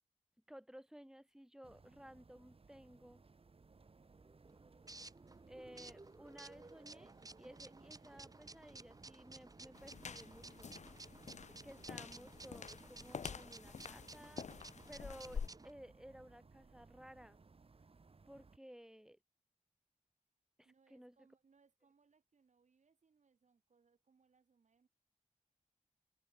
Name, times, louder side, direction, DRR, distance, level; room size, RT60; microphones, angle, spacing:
voice 1, 0.5-3.2 5.5-7.1 7.4-10.7 11.0-11.2 11.6-14.5 14.9-17.4 18.3-19.2 20.9-21.2, equal, 5° right, 2.7 m, -56 dB
sound 1, 1.6-18.6, right 4 dB, 50° right, 1.9 m, -64 dB
sound 2, 4.1-15.7, right 2 dB, 30° right, 1.5 m, -56 dB
sound 3, 9.8-15.5, left 6 dB, 70° left, 0.7 m, -48 dB
voice 2, 20.6-24.9, right 5 dB, 75° right, 3.3 m, -73 dB
open air
wide cardioid pair, 95°, 12 cm